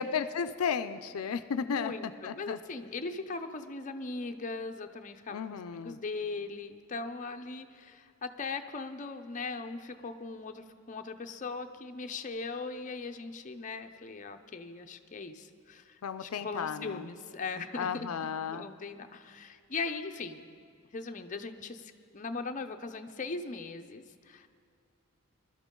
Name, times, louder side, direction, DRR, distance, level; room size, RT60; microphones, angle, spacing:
voice 1, 0.0-1.9 2.2-2.6 5.3-6.0 16.0-17.1 17.8-18.7, left 6 dB, 85° left, 12 dB, 0.4 m, -34 dB
voice 2, 1.6-18.1 18.5-20.4 20.9-24.5, left 4 dB, 35° left, 5 dB, 0.6 m, -39 dB
20.5 x 12.0 x 3.8 m, 2.3 s
head